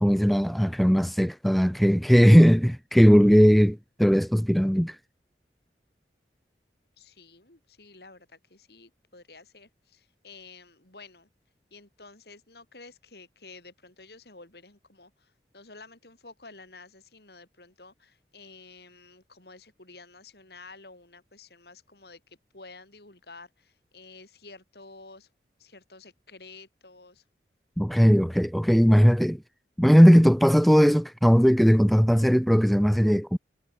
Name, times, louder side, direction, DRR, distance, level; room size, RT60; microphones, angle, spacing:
voice 1, 0.0-5.0 27.8-29.4 29.8-33.4, equal, ahead, 0.6 m, -18 dB
voice 2, 7.0-11.3 11.7-25.3 25.6-27.2, left 3 dB, 65° left, 4.1 m, -50 dB
head